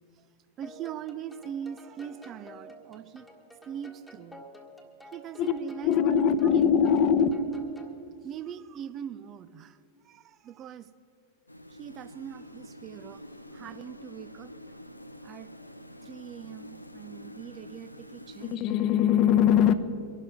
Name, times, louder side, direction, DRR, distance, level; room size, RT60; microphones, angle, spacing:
sound 1, 0.6-8.0, equal, ahead, 1.6 m, -50 dB
voice 1, 0.6-3.3 3.6-4.5 5.1-5.9 6.5-6.6 8.2-9.8 10.0-10.9 11.7-13.2 13.5-14.5 15.2-15.5 16.0-18.8, right 9 dB, 30° right, 14 dB, 0.7 m, -41 dB
voice 2, 5.8-7.3 18.4-19.7, left 8 dB, 40° left, 12 dB, 0.9 m, -22 dB
sound 2, 11.5-18.6, left 1 dB, 85° left, 0.7 m, -47 dB
23.5 x 12.0 x 3.7 m, 2.7 s
figure-of-eight pair, 90°, 0 cm